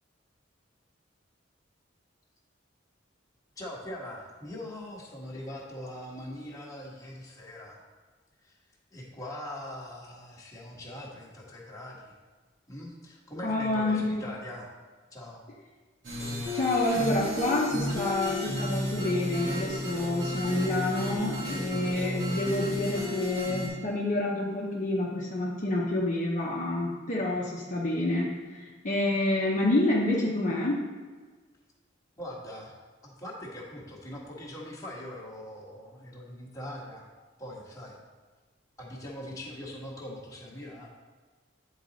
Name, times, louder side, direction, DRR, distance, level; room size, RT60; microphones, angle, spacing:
voice 1, 3.6-7.8 8.4-8.6 8.9-12.1 12.7-14.7 15.1-15.4 32.2-32.7 33.0-37.1 37.4-38.0 38.8-40.9, left 1 dB, 20° left, -4 dB, 1.4 m, -42 dB
voice 2, 13.4-14.3 16.5-30.8, left 1 dB, 45° left, -4 dB, 0.9 m, -28 dB
sound 1, 16.0-23.7, left 1 dB, 80° right, 2.0 m, -33 dB
9.1 x 4.0 x 4.1 m, 1.4 s
head